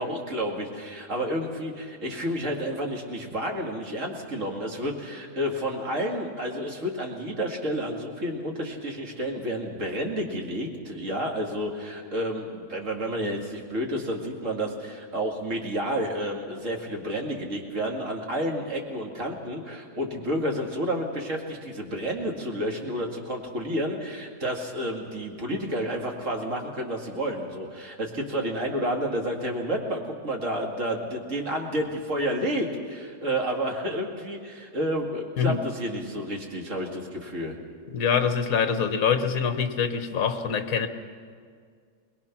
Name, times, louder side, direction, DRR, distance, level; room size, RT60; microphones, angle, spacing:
voice 1, 0.0-37.6, equal, 50° right, 1 dB, 2.5 m, -30 dB
voice 2, 37.9-40.9, left 7 dB, 60° left, 9 dB, 1.5 m, -24 dB
22.5 x 20.5 x 5.9 m, 2.1 s
omnidirectional pair, 1.7 m